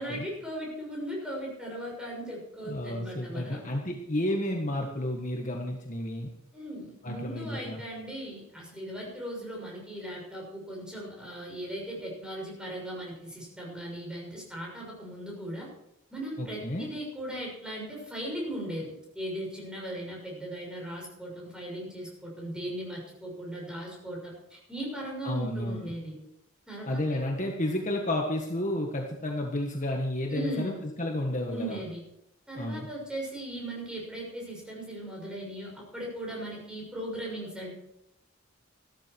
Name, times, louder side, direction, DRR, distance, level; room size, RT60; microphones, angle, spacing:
voice 1, 0.0-3.6 6.5-15.7 16.1-26.2 26.7-27.2 30.3-30.8 31.5-32.0 32.5-37.7, right 1 dB, 5° right, -2 dB, 6.3 m, -38 dB
voice 2, 2.6-6.3 7.0-7.8 16.4-16.9 25.2-25.9 26.9-31.8 32.6-32.9, left 1 dB, 40° left, 1 dB, 1.6 m, -31 dB
15.0 x 13.0 x 4.7 m, 0.80 s
head